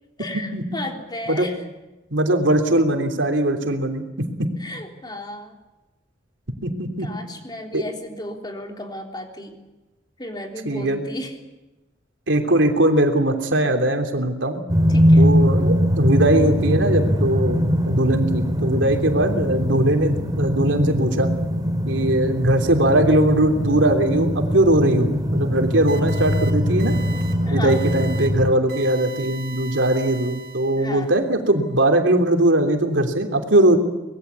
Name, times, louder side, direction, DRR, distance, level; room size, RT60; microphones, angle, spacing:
voice 1, 0.2-1.6 4.6-5.6 7.0-9.6 10.2-11.3 14.9-15.2 27.5-27.9 30.8-31.1, left 1 dB, 25° left, 2 dB, 3.6 m, -34 dB
voice 2, 2.1-4.0 4.4-4.5 6.6-7.1 7.7-7.8 10.6-11.0 12.3-14.6 15.2-21.3 21.8-26.9 27.5-33.8, right 1 dB, 85° right, 4 dB, 3.2 m, -20 dB
sound 1, 14.7-28.5, equal, 20° right, 2.2 m, -21 dB
sound 2, 25.9-26.5 26.8-27.3 27.7-28.3 28.7-31.0, right 5 dB, 60° right, 4.3 m, -39 dB
24.5 x 20.5 x 8.4 m, 1.0 s
head